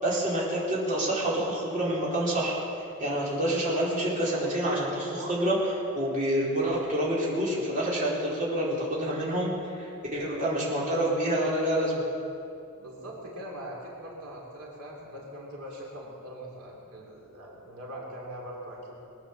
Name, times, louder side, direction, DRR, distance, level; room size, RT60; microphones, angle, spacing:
voice 1, 0.0-2.6 3.0-9.5 9.7-12.0, right 1 dB, 35° right, -6 dB, 4.0 m, -27 dB
voice 2, 12.7-19.1, equal, 75° right, -3 dB, 3.0 m, -42 dB
22.0 x 9.1 x 7.2 m, 2.7 s
head